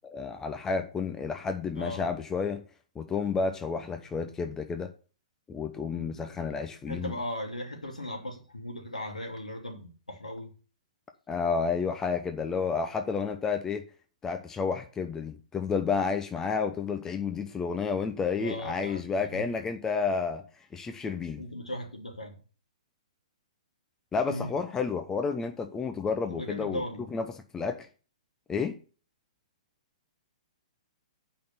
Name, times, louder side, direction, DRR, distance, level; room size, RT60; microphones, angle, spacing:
voice 1, 0.1-2.6 3.0-4.9 5.5-7.1 11.3-13.8 14.2-20.4 20.7-21.4 24.1-26.8 27.1-27.3 27.5-27.9 28.5-28.8, left 5 dB, 15° left, 6 dB, 0.8 m, -30 dB
voice 2, 1.7-2.1 6.9-10.5 18.4-19.0 19.3-19.4 21.4-22.4 24.3-24.5 26.3-27.1, left 1 dB, 85° left, 2 dB, 2.9 m, -37 dB
8.7 x 5.7 x 6.9 m, 0.37 s
figure-of-eight pair, 115°, 4 cm